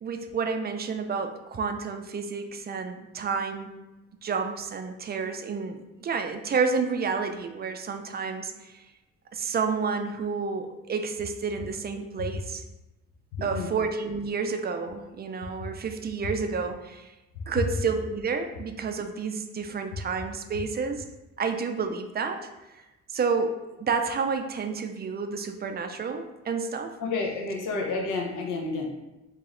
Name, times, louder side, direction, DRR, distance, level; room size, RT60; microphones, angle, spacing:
voice 1, 0.0-3.8 4.2-8.8 9.3-12.6 13.4-17.1 17.5-21.0 21.4-22.5 22.8-22.9 23.1-26.9, right 5 dB, 35° right, 6 dB, 0.4 m, -30 dB
voice 2, 13.3-13.7 27.0-28.9, left 3 dB, 85° left, 0 dB, 0.8 m, -30 dB
3.1 x 2.8 x 3.7 m, 1.0 s
cardioid pair, 90°, 30 cm